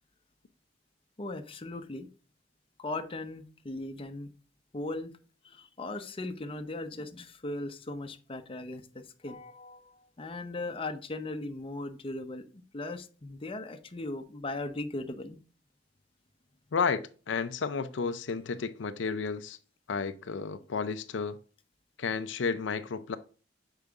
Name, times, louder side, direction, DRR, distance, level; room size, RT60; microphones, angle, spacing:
voice 1, 1.2-2.1 2.8-4.3 4.7-5.1 5.4-12.5 12.7-15.4, left 2 dB, 30° left, 0.7 m, -38 dB
voice 2, 16.7-19.6 19.9-21.4 22.0-23.2, left 5 dB, 80° left, 0.5 m, -32 dB
6.6 x 4.9 x 3.5 m
head